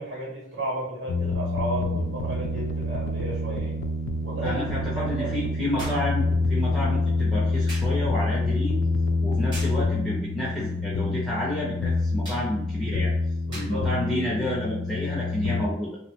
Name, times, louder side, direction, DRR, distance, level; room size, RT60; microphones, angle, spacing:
voice 1, 0.0-3.8 4.2-5.3 13.5-13.9, right 2 dB, 75° right, -5 dB, 0.9 m, -33 dB
sound 1, 1.1-15.6, left 2 dB, 80° left, 0.3 m, -27 dB
sound 2, 2.0-2.1 5.8-6.1 7.7-8.0 9.5-9.9 12.2-12.5 13.5-13.8 14.9-15.0, right 1 dB, 25° right, 0.9 m, -39 dB
voice 2, 4.4-8.7 9.2-13.1 13.5-15.9, left 1 dB, ahead, -7 dB, 0.4 m, -30 dB
2.9 x 2.0 x 2.9 m, 0.79 s
head